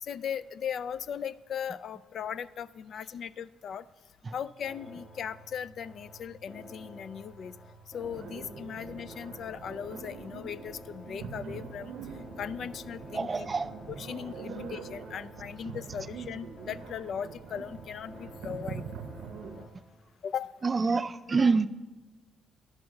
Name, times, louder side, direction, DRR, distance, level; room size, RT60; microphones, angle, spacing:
voice 1, 0.0-3.8 4.3-7.5 7.9-11.9 12.4-13.5 13.9-18.8 19.5-19.6 20.2-20.5, left 8 dB, 60° left, 18 dB, 0.3 m, -38 dB
sound 1, 4.6-19.7, equal, 35° left, 1.6 m, -49 dB
sound 2, 8.0-19.7, right 6 dB, 80° right, 0.7 m, -44 dB
voice 2, 13.1-13.7 20.6-21.7, right 4 dB, 30° right, 13 dB, 0.4 m, -26 dB
11.0 x 5.8 x 6.4 m, 1.2 s
cardioid pair, 90°, 0 cm